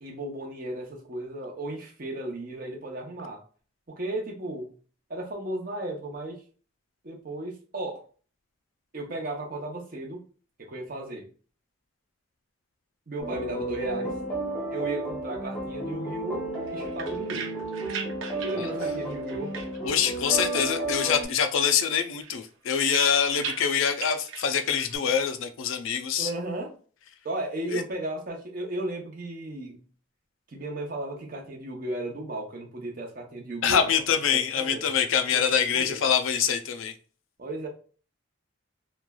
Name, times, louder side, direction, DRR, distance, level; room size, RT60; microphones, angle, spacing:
voice 1, 0.0-3.4 3.9-4.7 5.1-6.4 7.0-8.0 8.9-10.2 10.6-11.3 13.1-14.1 14.7-17.5 18.4-19.5 26.2-26.7 27.2-29.8 30.5-34.0 34.3-34.9 35.3-36.1 37.4-37.7, right 1 dB, 45° right, 0.7 m, -35 dB
sound 1, 13.2-21.3, right 2 dB, 10° left, 0.7 m, -32 dB
sound 2, 16.5-20.3 20.5-21.4 21.7-25.0, right 6 dB, 85° right, 0.5 m, -40 dB
voice 2, 19.8-26.3 27.7-27.8 33.6-36.9, left 7 dB, 80° left, 0.4 m, -25 dB
3.0 x 2.2 x 2.2 m
head